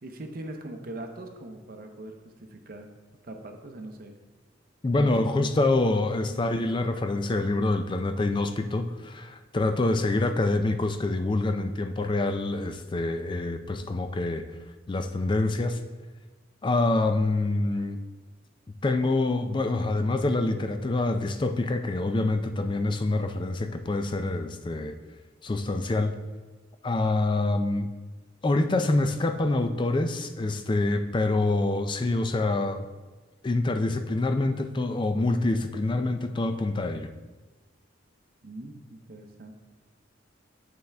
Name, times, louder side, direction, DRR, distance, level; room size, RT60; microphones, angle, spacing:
voice 1, 0.0-2.9 3.2-4.2 4.9-5.9 6.3-6.4 38.4-39.5, right 1 dB, 50° right, 4 dB, 0.7 m, -41 dB
voice 2, 4.8-14.5 14.9-15.8 16.6-18.0 18.8-25.0 25.4-26.1 26.8-27.9 28.4-32.9 33.4-37.1, left 2 dB, 25° left, 8 dB, 0.4 m, -26 dB
7.8 x 5.6 x 3.4 m, 1.2 s
head